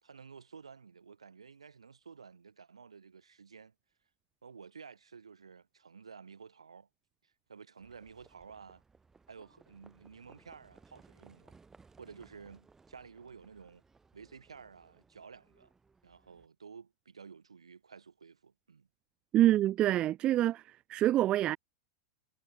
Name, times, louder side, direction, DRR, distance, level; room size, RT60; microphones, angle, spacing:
voice 1, 0.0-3.7 4.4-6.9 7.2-8.8 9.3-11.6 12.0-13.8 14.1-15.7 16.0-18.9, right 6 dB, 85° right, 4.1 m, -52 dB
Livestock farm animals working animals, 7.8-16.5, right 4 dB, 15° right, 4.1 m, -63 dB
voice 2, 19.3-20.6 20.9-21.6, right 13 dB, 35° right, 0.4 m, -26 dB
hypercardioid pair, 100°, 3 cm